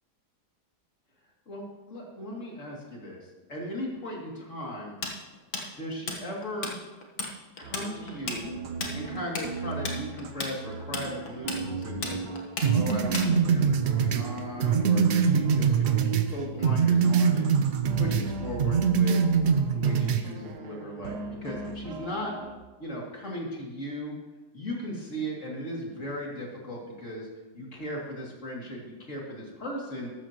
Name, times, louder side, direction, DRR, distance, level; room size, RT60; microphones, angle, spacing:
voice 1, 1.5-3.2 3.5-5.0 5.8-6.8 7.6-8.5 8.9-12.3 12.7-17.5 17.9-19.2 19.7-22.3 22.8-24.1 24.5-27.3 27.5-30.1, equal, 45° left, -2 dB, 2.9 m, -37 dB
Tools, 5.0-6.7 7.0-7.3 7.6-13.6, left 3 dB, 65° left, 1.9 m, -34 dB
sound 1, 7.6-22.6, right 5 dB, 85° right, 1.5 m, -38 dB
sound 2, 12.6-16.3 16.6-18.3 18.6-20.2, right 6 dB, 60° right, 0.7 m, -23 dB
14.0 x 12.5 x 3.0 m, 1.2 s
omnidirectional pair, 1.7 m